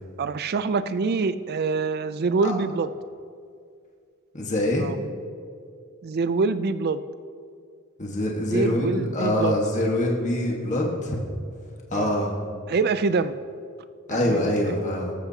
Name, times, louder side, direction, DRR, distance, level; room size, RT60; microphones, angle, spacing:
voice 1, 0.2-2.9 4.8-5.0 6.0-7.0 8.5-9.6 11.9-12.1 12.7-13.4 14.1-14.7, right 4 dB, 45° right, 13 dB, 0.4 m, -25 dB
voice 2, 4.3-4.9 8.0-11.2 11.9-12.3 14.1-15.1, left 1 dB, 35° left, -2 dB, 1.5 m, -24 dB
18.5 x 14.0 x 2.9 m, 2.3 s
head